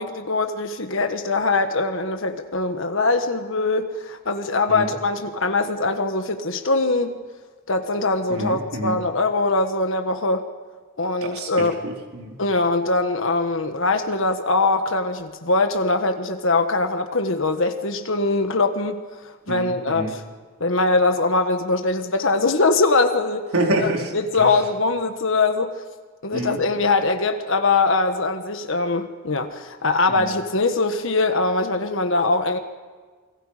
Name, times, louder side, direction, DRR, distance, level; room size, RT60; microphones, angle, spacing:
voice 1, 0.0-7.2 7.7-10.4 11.0-11.8 12.4-20.2 20.6-23.5 24.1-25.8 26.2-32.6, left 3 dB, 65° left, 6 dB, 1.4 m, -22 dB
voice 2, 8.3-9.0 11.2-12.4 19.5-20.1 23.5-24.1 24.4-24.5 26.3-26.6 30.1-30.3, right 1 dB, 80° right, 0 dB, 4.5 m, -27 dB
29.0 x 22.5 x 5.1 m, 1.5 s
head